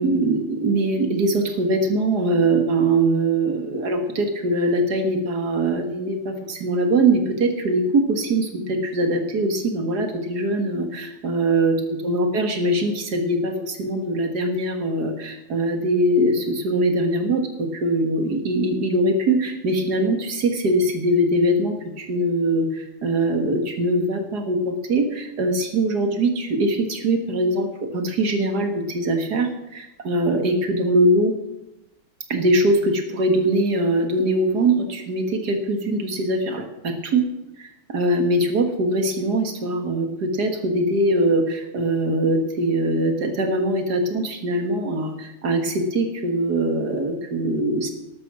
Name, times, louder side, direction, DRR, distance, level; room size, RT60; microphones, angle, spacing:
voice 1, 0.0-31.3 32.3-37.3 37.6-47.9, right 1 dB, 55° right, 6 dB, 2.2 m, -22 dB
12.5 x 12.0 x 6.1 m, 0.91 s
omnidirectional pair, 2.2 m